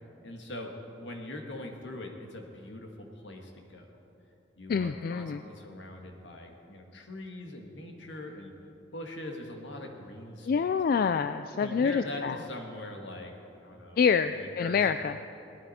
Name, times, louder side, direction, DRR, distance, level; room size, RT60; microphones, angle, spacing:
voice 1, 0.2-0.7 1.0-3.9 4.6-8.5 8.9-10.7 11.6-14.0 14.3-15.0, left 1 dB, 80° left, 2 dB, 1.8 m, -42 dB
voice 2, 4.7-5.4 10.4-12.4 14.0-15.1, left 6 dB, 55° left, 10 dB, 0.3 m, -27 dB
18.5 x 12.5 x 4.3 m, 2.9 s
head